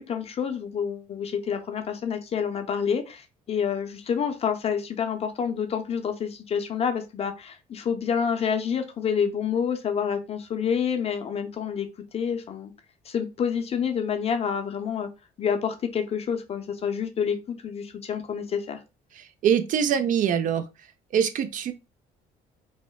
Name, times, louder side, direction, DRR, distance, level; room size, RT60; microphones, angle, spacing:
voice 1, 0.0-11.9 12.1-12.7 13.1-15.1 15.4-18.8, left 7 dB, 35° left, 0.5 m, -28 dB
voice 2, 19.2-20.6 21.1-21.7, right 8 dB, 50° right, 0.4 m, -24 dB
2.9 x 2.0 x 2.2 m
cardioid pair, 110°, 17 cm